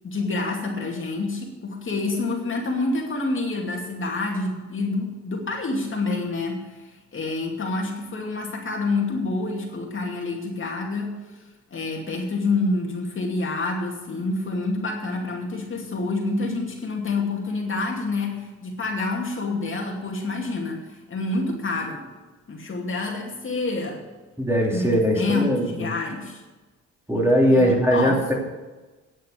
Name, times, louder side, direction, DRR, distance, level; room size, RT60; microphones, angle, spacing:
voice 1, 0.0-11.4 11.7-22.1 22.5-24.0 24.7-26.4 27.5-28.3, left 3 dB, 40° left, 0 dB, 2.5 m, -28 dB
voice 2, 24.4-25.9 27.1-28.3, equal, 10° right, -2 dB, 2.9 m, -20 dB
10.5 x 7.5 x 8.4 m, 1.2 s
cardioid pair, 90°, 30 cm